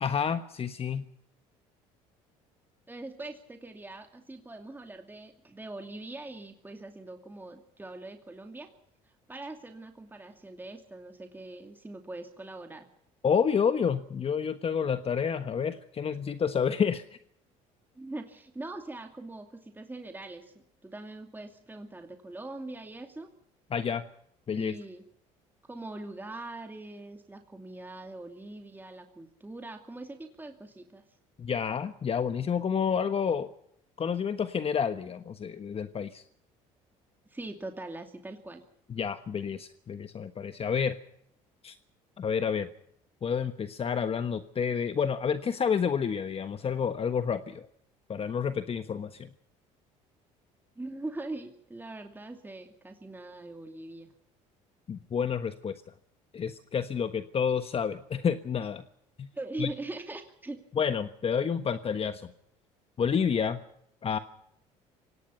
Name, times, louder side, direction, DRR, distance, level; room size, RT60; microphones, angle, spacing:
voice 1, 0.0-1.0 13.2-17.2 23.7-24.0 24.5-24.7 31.4-33.5 34.0-36.2 38.9-41.0 41.6-41.8 42.2-42.7 43.2-47.7 48.1-49.3 54.9-55.7 56.3-58.8 59.2-59.3 59.6-59.7 60.7-62.3 63.0-63.6 64.0-64.2, left 7 dB, 40° left, 10 dB, 1.3 m, -29 dB
voice 2, 2.9-8.7 9.0-12.9 18.0-20.5 20.8-23.3 24.5-25.0 25.7-31.0 37.3-38.6 50.8-54.1 59.3-60.6, right 2 dB, 10° right, 4 dB, 2.5 m, -42 dB
25.0 x 18.5 x 5.7 m, 0.75 s
supercardioid pair, 75°, 16 cm